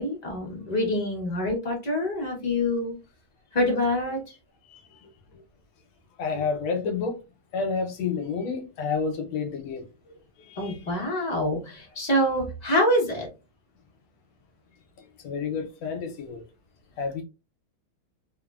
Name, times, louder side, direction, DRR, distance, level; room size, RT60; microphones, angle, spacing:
voice 1, 0.0-2.9 3.5-4.4 10.6-13.3, left 1 dB, 45° left, 0.5 m, -26 dB
voice 2, 4.7-5.0 5.3-5.4 6.2-7.2 7.5-9.9 10.4-10.8 15.2-16.5 17.0-17.2, left 5 dB, 75° left, 1.4 m, -30 dB
3.5 x 2.0 x 2.3 m
omnidirectional pair, 2.3 m